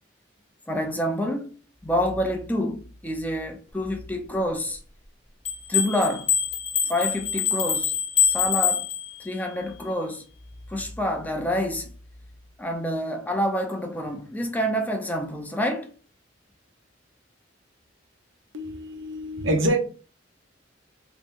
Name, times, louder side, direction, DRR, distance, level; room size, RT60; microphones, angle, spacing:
voice 1, 0.7-1.5 1.8-4.8 5.7-6.3 6.8-7.9 8.2-8.9 9.2-10.2 10.7-11.9 12.6-15.9, equal, 10° left, 0.5 m, -27 dB
sound 1, 5.4-9.4, left 7 dB, 30° left, 1.0 m, -25 dB
voice 2, 18.5-19.8, right 1 dB, 75° right, 0.8 m, -26 dB
3.2 x 3.0 x 3.5 m
head